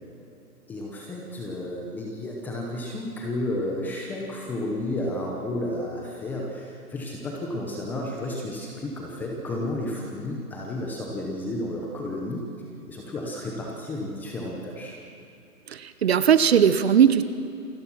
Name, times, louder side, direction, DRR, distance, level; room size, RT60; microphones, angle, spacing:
voice 1, 0.7-12.5 12.9-15.0, left 1 dB, 5° left, 0 dB, 0.8 m, -32 dB
voice 2, 15.7-17.2, right 8 dB, 40° right, 13 dB, 1.0 m, -19 dB
27.5 x 19.5 x 6.2 m, 2.8 s
hypercardioid pair, 150°, 47 cm